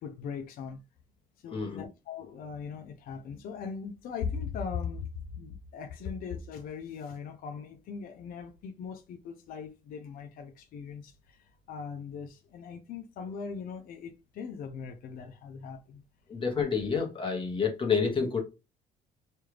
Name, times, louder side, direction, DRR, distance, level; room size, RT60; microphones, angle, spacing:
voice 1, 0.0-0.8 1.4-16.0, left 6 dB, 60° left, 0.5 m, -39 dB
voice 2, 1.5-1.8 16.3-18.4, left 5 dB, 30° left, 1.0 m, -29 dB
3.2 x 2.3 x 3.1 m
cardioid pair, 110°, 17 cm